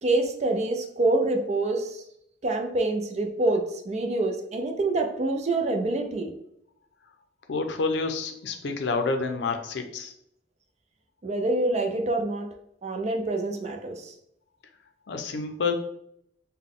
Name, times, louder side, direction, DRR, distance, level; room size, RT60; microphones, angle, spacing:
voice 1, 0.0-2.0 2.4-6.3 11.2-12.5 12.8-14.1, right 2 dB, 40° right, 4 dB, 0.5 m, -26 dB
voice 2, 7.5-10.1 15.1-15.7, left 4 dB, 70° left, 6 dB, 0.5 m, -28 dB
3.8 x 2.2 x 3.6 m, 0.72 s
head